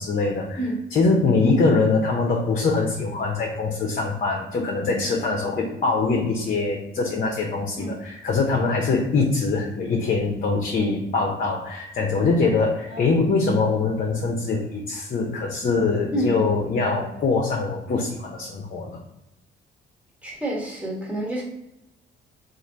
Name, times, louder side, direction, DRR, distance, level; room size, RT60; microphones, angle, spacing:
voice 1, 0.0-0.6 0.9-19.0, left 3 dB, 45° left, 0 dB, 0.7 m, -23 dB
voice 2, 20.2-21.4, right 1 dB, 5° right, -4 dB, 1.3 m, -28 dB
3.1 x 2.5 x 3.8 m, 0.86 s
cardioid pair, 90°, 20 cm